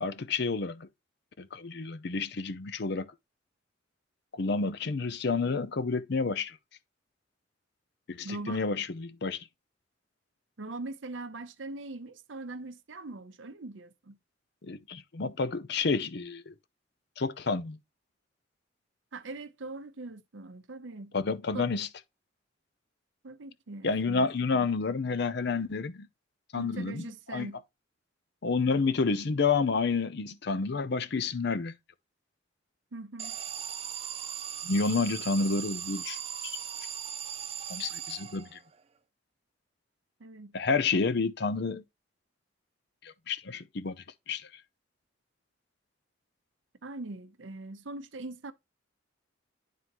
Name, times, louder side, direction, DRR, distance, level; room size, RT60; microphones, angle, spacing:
voice 1, 0.0-0.9 1.4-3.1 4.3-6.6 8.1-9.4 14.6-16.5 17.2-17.8 21.1-21.9 23.8-26.1 26.5-27.5 28.4-31.7 34.6-36.2 36.4-36.6 37.7-38.6 40.5-41.8 43.0-44.0 44.3-44.5, left 4 dB, 60° left, 0.6 m, -30 dB
voice 2, 8.2-8.6 10.6-14.2 19.1-21.2 21.5-21.7 23.2-24.7 26.6-27.6 32.9-33.4 40.2-40.6 46.8-48.5, right 2 dB, 80° right, 0.8 m, -41 dB
Alarm, 33.2-38.8, right 8 dB, 30° right, 0.4 m, -38 dB
11.0 x 3.8 x 3.0 m
head